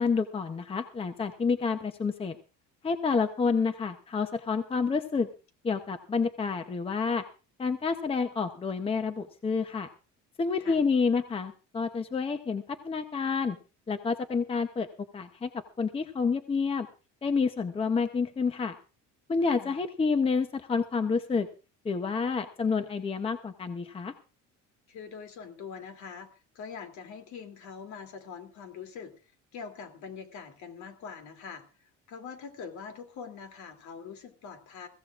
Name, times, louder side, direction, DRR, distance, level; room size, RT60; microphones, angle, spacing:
voice 1, 0.0-2.4 2.8-5.3 5.6-7.2 7.6-9.9 10.4-13.6 13.9-14.9 15.1-15.5 15.8-16.9 17.2-18.8 19.3-21.5 21.8-24.1, left 5 dB, 15° left, 9 dB, 0.8 m, -29 dB
voice 2, 19.4-19.8 24.9-26.3 26.5-29.1 29.5-31.6 32.1-34.9, left 6 dB, 60° left, 6 dB, 3.0 m, -43 dB
22.5 x 16.0 x 2.5 m, 0.34 s
cardioid pair, 155°, 32 cm